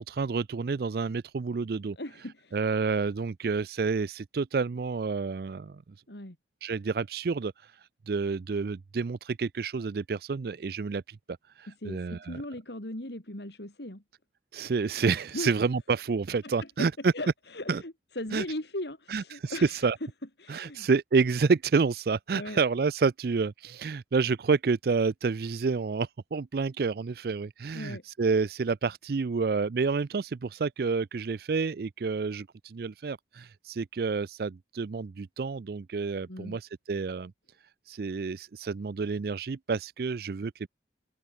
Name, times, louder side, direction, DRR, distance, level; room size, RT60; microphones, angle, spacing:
voice 1, 0.0-2.0 2.5-5.8 6.6-7.7 8.1-12.4 14.5-17.1 17.7-17.8 18.3-18.4 19.1-20.0 20.5-37.3 37.9-40.7, right 4 dB, 60° right, 0.4 m, -29 dB
voice 2, 2.0-2.6 6.1-6.4 11.7-14.0 15.3-15.5 16.4-16.5 16.8-16.9 17.1-20.1 20.4-20.9 22.3-22.6 27.7-28.0 36.3-36.6, left 1 dB, 75° left, 4.1 m, -38 dB
open air
head